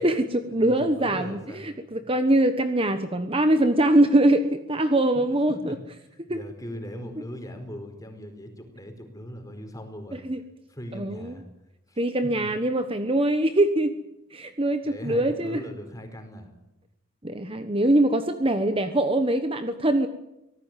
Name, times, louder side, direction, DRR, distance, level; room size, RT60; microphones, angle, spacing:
voice 1, 0.0-5.7 6.3-6.4 10.1-10.4 10.9-11.3 12.0-14.0 14.3-15.6 17.2-20.1, right 1 dB, 25° right, 8 dB, 1.2 m, -23 dB
voice 2, 0.5-1.7 2.0-2.1 5.1-5.8 6.1-10.2 10.7-11.4 11.9-12.0 12.4-12.5 14.8-16.5, equal, 15° left, 6 dB, 4.6 m, -39 dB
25.5 x 18.5 x 9.2 m, 0.91 s
head